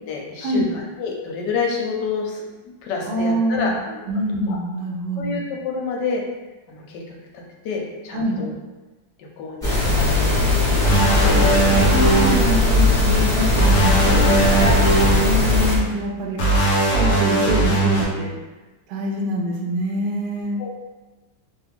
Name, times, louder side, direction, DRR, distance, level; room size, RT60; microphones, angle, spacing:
voice 1, 0.1-2.4 2.8-4.0 4.5-4.6 5.2-6.2 6.7-7.0 7.6-8.5 9.4-10.5 10.9-11.3 11.7-11.9 14.4-14.9 20.6-20.7, left 4 dB, 75° left, 0 dB, 1.2 m, -28 dB
voice 2, 3.0-3.8 4.1-5.4 8.1-8.4 10.9-11.3 11.9-14.6 15.2-16.4 16.9-18.3 18.9-20.6, equal, 75° right, -1 dB, 1.1 m, -25 dB
sound 1, 9.6-15.7, left 2 dB, ahead, 0.9 m, -19 dB
sound 2, 10.8-12.4 13.5-15.2 16.4-18.0, right 2 dB, 60° left, 0.9 m, -18 dB
3.0 x 2.3 x 3.4 m, 1.2 s
omnidirectional pair, 2.0 m